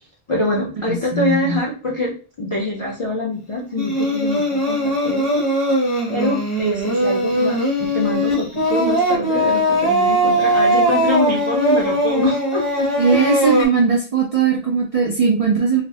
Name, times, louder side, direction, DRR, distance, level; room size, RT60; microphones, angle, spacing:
voice 1, 0.3-5.5 6.1-13.4, left 2 dB, 55° left, -3 dB, 0.3 m, -24 dB
voice 2, 1.1-1.6 13.0-15.8, right 5 dB, 65° right, -1 dB, 0.3 m, -18 dB
Singing, 3.8-13.7, equal, 15° left, 0.6 m, -20 dB
2.4 x 2.0 x 2.6 m, 0.36 s
omnidirectional pair, 1.2 m